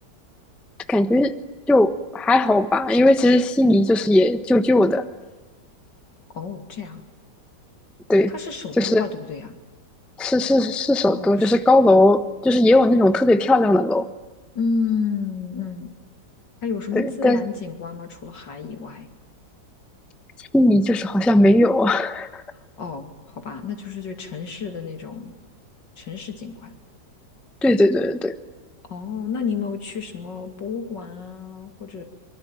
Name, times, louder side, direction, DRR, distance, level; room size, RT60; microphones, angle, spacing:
voice 1, 0.9-1.3 1.7-5.0 8.1-8.3 8.8-9.0 10.2-14.1 16.9-17.4 20.4-22.4 27.6-28.3, left 1 dB, ahead, 11 dB, 0.7 m, -18 dB
voice 2, 6.3-7.0 8.3-9.6 11.1-11.5 14.5-15.9 16.6-19.1 22.8-25.3 26.0-26.7 28.8-32.0, left 5 dB, 75° left, 6 dB, 3.3 m, -30 dB
24.5 x 23.5 x 9.1 m, 1.2 s
omnidirectional pair, 2.0 m